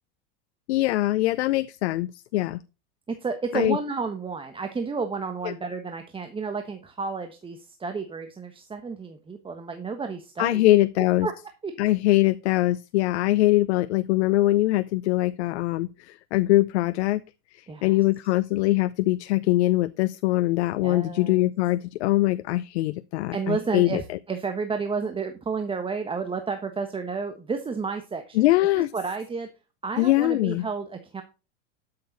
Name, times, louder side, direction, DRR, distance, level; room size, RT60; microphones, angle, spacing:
voice 1, 0.7-2.6 3.5-3.8 5.4-5.5 10.4-11.3 11.8-17.2 17.5-24.0 28.4-28.9 30.0-30.6, left 17 dB, 80° left, 0.7 m, -22 dB
voice 2, 3.1-10.8 11.2-11.3 11.6-11.7 17.7-18.0 20.8-21.5 23.3-28.4 28.7-29.5 29.8-31.2, right 4 dB, 15° right, 1.2 m, -31 dB
12.5 x 6.9 x 4.0 m
supercardioid pair, 115°, 33 cm